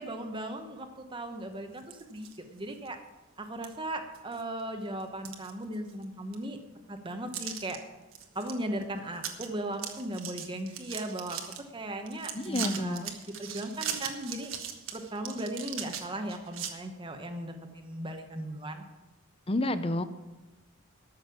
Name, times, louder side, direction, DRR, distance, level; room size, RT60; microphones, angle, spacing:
voice 1, 0.0-3.0 3.4-6.6 6.9-7.8 8.3-14.5 14.9-18.8, right 1 dB, 25° right, 5 dB, 1.1 m, -37 dB
sound 1, 1.8-2.4 2.8-2.9 3.6-3.7 4.1-4.6 5.0-6.0 6.3-6.4 7.3-7.8 8.1-8.5 8.8-8.9 9.2-9.5 9.7-11.6 12.1-16.7, right 8 dB, 75° right, 1.4 m, -39 dB
voice 2, 12.3-13.1 19.5-20.0, left 1 dB, 30° left, 12 dB, 0.6 m, -29 dB
13.5 x 6.6 x 7.0 m, 1.1 s
head